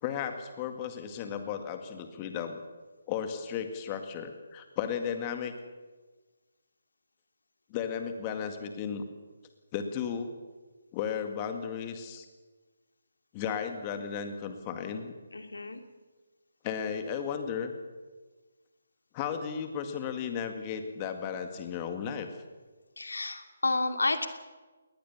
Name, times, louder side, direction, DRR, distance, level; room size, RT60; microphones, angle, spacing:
voice 1, 0.0-2.6 3.1-5.5 7.7-9.0 9.7-10.3 10.9-12.3 13.3-15.1 16.6-17.7 19.1-22.3, left 7 dB, 25° left, 7 dB, 2.0 m, -34 dB
voice 2, 15.3-15.8 23.0-24.3, left 2 dB, 80° left, 7 dB, 2.5 m, -30 dB
21.0 x 19.0 x 7.3 m, 1.3 s
figure-of-eight pair, 150°, 0 cm